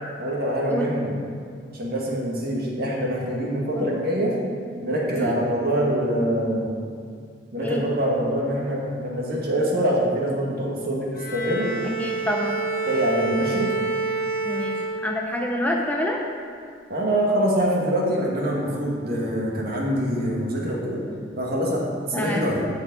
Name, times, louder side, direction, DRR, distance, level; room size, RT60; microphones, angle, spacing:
voice 1, 0.2-1.2 1.7-4.4 4.8-6.7 7.5-11.7 12.9-13.7 16.9-21.0 21.4-22.7, right 1 dB, 55° right, -3 dB, 1.9 m, -24 dB
Bowed string instrument, 11.1-15.6, right 3 dB, 50° left, 1.1 m, -28 dB
voice 2, 12.0-12.6 14.4-16.2 21.1-21.2 22.1-22.5, left 1 dB, 10° left, 0 dB, 0.7 m, -27 dB
16.0 x 5.4 x 4.0 m, 2.2 s
head